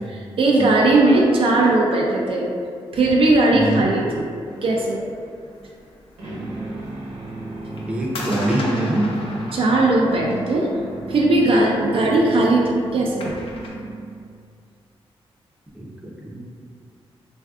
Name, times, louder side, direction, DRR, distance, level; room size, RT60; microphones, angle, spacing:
voice 1, 0.1-2.5 2.9-4.3 4.6-5.0 9.5-10.7 11.1-13.3, right 2 dB, 65° right, -2 dB, 0.4 m, -18 dB
voice 2, 3.5-3.8 7.9-9.1 15.7-16.4, right 1 dB, 10° right, -4 dB, 0.5 m, -24 dB
sound 1, 4.5-13.7, left 1 dB, 65° left, 0.5 m, -39 dB
sound 2, 6.2-14.4, right 2 dB, 90° right, 0.9 m, -34 dB
3.3 x 2.4 x 2.4 m, 2.3 s
wide cardioid pair, 105°, 10 cm